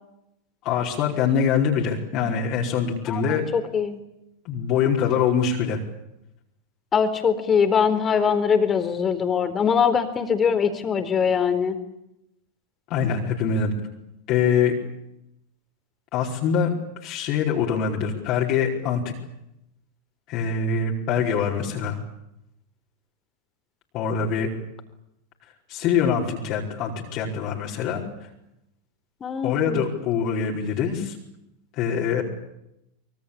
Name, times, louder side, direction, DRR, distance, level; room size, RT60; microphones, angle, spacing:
voice 1, 0.6-3.5 4.4-5.8 12.9-13.7 14.3-14.7 16.1-16.7 17.0-19.0 20.3-22.0 23.9-24.5 25.7-28.0 29.4-31.1 31.7-32.2, left 7 dB, 45° left, -2 dB, 4.9 m, -24 dB
voice 2, 3.1-4.0 6.9-11.8 29.2-29.8, left 6 dB, 25° left, 10 dB, 4.1 m, -22 dB
25.5 x 24.0 x 8.7 m, 0.85 s
hypercardioid pair, 90°, 0 cm